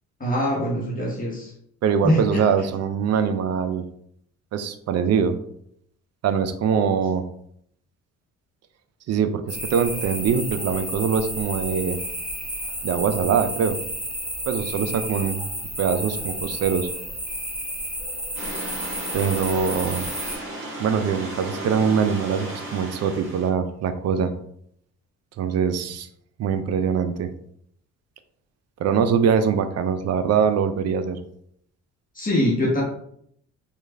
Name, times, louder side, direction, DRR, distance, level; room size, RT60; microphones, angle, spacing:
voice 1, 0.2-1.5 2.0-2.4 32.2-32.8, equal, 30° left, -3 dB, 1.0 m, -23 dB
voice 2, 1.8-3.9 4.5-5.3 6.2-7.2 9.1-12.0 12.8-13.8 14.5-15.4 15.8-16.9 19.1-20.1 20.8-24.3 25.4-26.1 26.4-27.3 28.8-31.2, right 7 dB, 60° right, 10 dB, 0.4 m, -23 dB
sound 1, 9.5-20.4, equal, 5° right, 0.9 m, -31 dB
sound 2, 18.3-23.5, right 1 dB, 40° right, 1.4 m, -34 dB
3.2 x 2.4 x 3.3 m, 0.69 s
cardioid pair, 90°, 30 cm